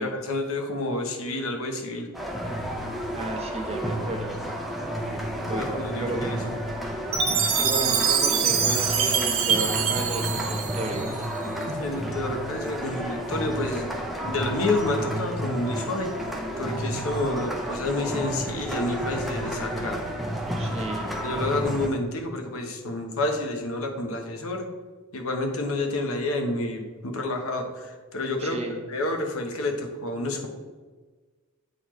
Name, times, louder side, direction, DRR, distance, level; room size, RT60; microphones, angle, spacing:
voice 1, 0.0-2.1 5.5-6.5 11.7-16.1 16.6-20.1 21.2-24.7 25.1-28.6 28.9-30.5, left 2 dB, 70° left, 3 dB, 0.9 m, -29 dB
sound 1, 2.1-21.9, equal, ahead, 0.6 m, -31 dB
voice 2, 3.1-4.4 5.5-6.2 7.6-11.1 20.6-21.1 28.4-28.8, right 2 dB, 30° right, 2 dB, 0.8 m, -33 dB
Chime, 7.1-11.4, right 7 dB, 70° right, 0.7 m, -24 dB
sound 2, 18.7-20.4, left 5 dB, 25° left, 1.0 m, -41 dB
8.2 x 4.1 x 3.1 m, 1.4 s
head